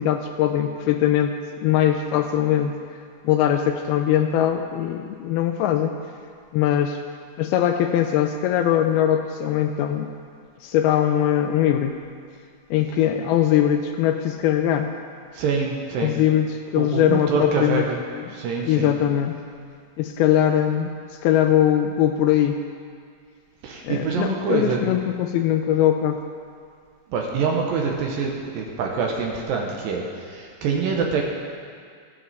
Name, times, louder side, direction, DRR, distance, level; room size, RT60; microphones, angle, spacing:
voice 1, 0.0-1.3 1.6-2.8 3.2-5.9 6.5-7.0 7.4-10.1 10.6-12.0 12.7-14.9 16.0-17.9 18.1-18.3 18.6-19.3 20.0-20.9 21.2-22.6 23.8-26.2, left 10 dB, 80° left, 6 dB, 2.3 m, -21 dB
voice 2, 15.3-16.2 16.8-18.0 18.3-18.9 23.6-24.8 27.1-31.2, right 5 dB, 70° right, 0 dB, 2.3 m, -25 dB
15.5 x 9.5 x 4.1 m, 2.2 s
omnidirectional pair, 4.7 m